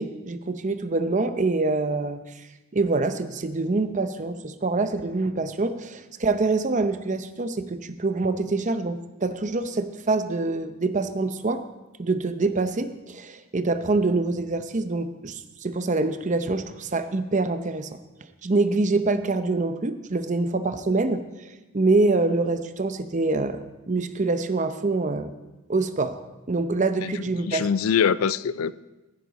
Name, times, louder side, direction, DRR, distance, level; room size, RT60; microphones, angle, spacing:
voice 1, 0.0-2.4 2.7-11.6 12.0-18.0 18.4-23.6 23.9-25.3 25.7-26.1 26.5-27.7, right 3 dB, 35° right, 0.7 m, -25 dB
voice 2, 27.0-28.7, left 7 dB, 85° left, 0.4 m, -24 dB
15.5 x 9.7 x 4.1 m
head